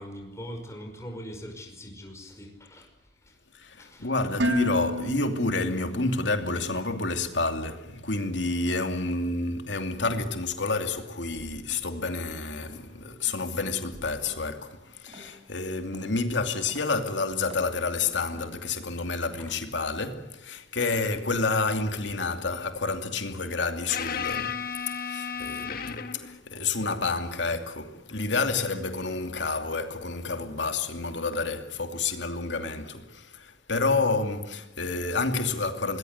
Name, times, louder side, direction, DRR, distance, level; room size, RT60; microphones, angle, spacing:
voice 1, 0.0-2.9 3.2-3.4 3.7-4.1 19.4-19.5, equal, 15° left, 5.3 m, -42 dB
voice 2, 3.5-24.6 25.1-36.0, left 3 dB, 80° left, 2.7 m, -29 dB
Dishes pots and pans, 4.4-6.5, left 1 dB, 70° right, 1.9 m, -31 dB
sound 1, 12.6-19.0, equal, 35° right, 4.3 m, -52 dB
sound 2, 23.9-26.4 29.4-29.5 31.3-31.5, left 7 dB, 55° left, 1.8 m, -33 dB
26.0 x 21.0 x 8.1 m
head